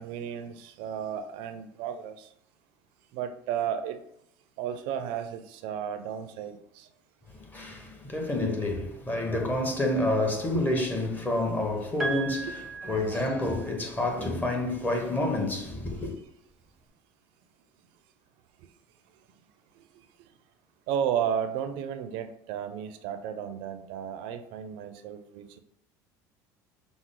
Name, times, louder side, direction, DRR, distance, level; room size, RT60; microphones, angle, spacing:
voice 1, 0.0-2.3 3.1-4.0 4.6-6.9 10.5-10.6 20.9-25.6, right 9 dB, 70° right, 0.5 m, -33 dB
voice 2, 7.3-16.2, left 1 dB, 20° left, 1.1 m, -29 dB
Piano, 12.0-14.0 15.3-15.4, right 3 dB, ahead, 0.9 m, -36 dB
5.9 x 2.0 x 3.7 m
supercardioid pair, 100°, 9 cm